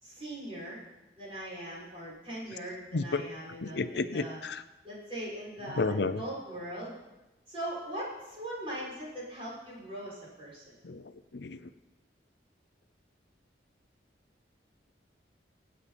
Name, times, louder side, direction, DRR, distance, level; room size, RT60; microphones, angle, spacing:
voice 1, 0.0-0.8 1.2-4.4 4.8-6.9 7.5-10.7, right 1 dB, 30° right, -6 dB, 6.4 m, -40 dB
voice 2, 2.9-3.2 3.6-4.6 5.8-6.2 10.8-11.7, left 3 dB, 75° left, 12 dB, 0.6 m, -32 dB
25.0 x 8.6 x 4.3 m, 1.0 s
head